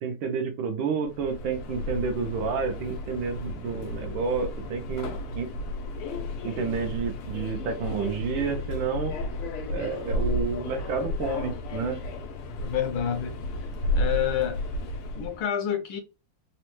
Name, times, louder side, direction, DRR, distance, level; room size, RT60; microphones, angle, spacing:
voice 1, 0.0-5.5 6.4-9.1 9.7-12.0, right 5 dB, 70° right, 1.3 m, -30 dB
Subway metro underground, 1.1-15.4, left 1 dB, 90° left, 1.7 m, -33 dB
voice 2, 12.6-13.4 13.9-14.6 15.1-16.0, left 9 dB, 75° left, 1.3 m, -28 dB
4.1 x 2.2 x 2.9 m
omnidirectional pair, 2.4 m